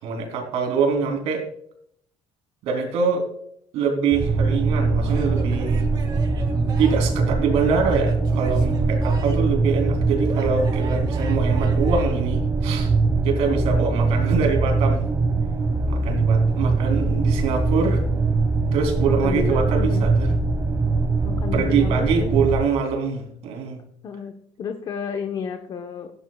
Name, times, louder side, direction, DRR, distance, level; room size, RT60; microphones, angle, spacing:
voice 1, 0.0-1.4 2.6-3.2 3.7-5.9 6.8-12.9 13.2-15.0 15.9-18.0 18.7-20.3 21.5-23.8, right 5 dB, 80° right, 3 dB, 3.4 m, -24 dB
sound 1, 4.1-22.6, right 3 dB, 25° right, 1.4 m, -22 dB
Male speech man speaking / Yell / Laughter, 5.0-7.2 7.8-9.6 10.2-12.1, right 4 dB, 45° right, 3.1 m, -39 dB
voice 2, 19.2-20.1 21.2-22.3 24.0-26.1, left 6 dB, 45° left, 5 dB, 1.1 m, -31 dB
16.0 x 11.0 x 2.4 m, 0.70 s
cardioid pair, 130°, 10 cm